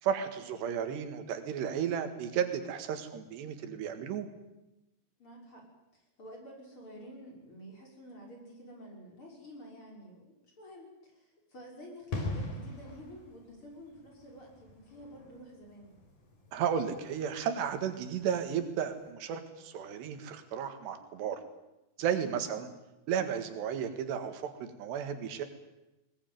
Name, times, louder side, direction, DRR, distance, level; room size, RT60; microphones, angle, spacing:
voice 1, 0.0-4.3 16.5-21.4 22.0-22.7 23.1-25.4, right 8 dB, 90° right, 8 dB, 4.0 m, -33 dB
voice 2, 5.2-5.7 5.9-15.9 22.4-22.6, equal, 30° left, 0 dB, 6.5 m, -50 dB
sound 1, 12.1-18.6 18.9-19.0, left 2 dB, 55° left, 5.2 m, -42 dB
21.0 x 20.5 x 9.3 m, 0.96 s
omnidirectional pair, 4.7 m